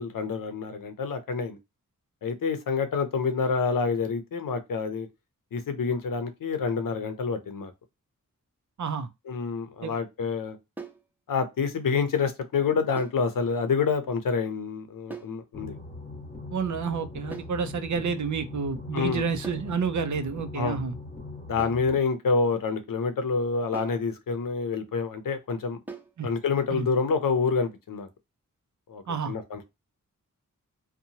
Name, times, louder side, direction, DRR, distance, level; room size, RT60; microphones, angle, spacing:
voice 1, 0.0-1.6 2.2-5.1 5.5-7.7 9.3-10.6 11.3-15.7 18.9-19.2 20.6-20.8 21.5-25.8 26.2-28.1 28.9-29.6, left 5 dB, 80° left, 0.6 m, -27 dB
voice 2, 8.8-9.1 9.8-9.9 16.5-20.9 26.2-26.3 26.7-26.9 29.1-29.4, right 5 dB, 60° right, 0.5 m, -29 dB
sound 1, 10.8-11.1 13.0-13.3 15.1-15.4 17.3-17.6 19.4-19.7 21.6-21.9 23.7-24.1 25.9-26.2, right 4 dB, 5° right, 0.5 m, -41 dB
sound 2, 15.5-22.0, left 2 dB, 30° left, 1.1 m, -41 dB
2.8 x 2.2 x 2.7 m
wide cardioid pair, 85°, 33 cm